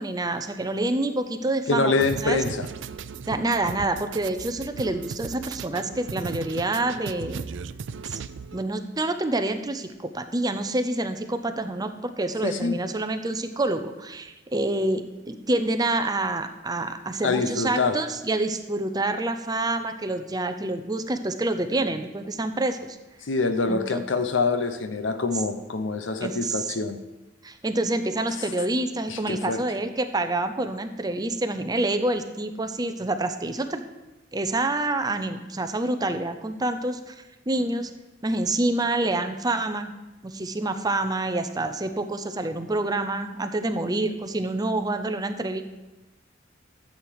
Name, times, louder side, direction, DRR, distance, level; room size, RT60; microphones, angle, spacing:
voice 1, 0.0-2.4 3.3-7.5 8.1-8.2 8.5-23.0 23.7-24.0 26.2-26.7 27.4-33.8 34.3-37.1 37.5-37.9 38.2-39.9 40.2-45.6, right 2 dB, 20° right, 8 dB, 0.7 m, -27 dB
voice 2, 1.7-2.7 12.4-12.8 17.2-18.0 23.3-27.0 29.1-29.6, left 3 dB, 80° left, 9 dB, 0.8 m, -25 dB
sound 1, 2.0-8.6, right 5 dB, 70° right, 0.4 m, -37 dB
12.5 x 7.9 x 4.9 m, 1.1 s
head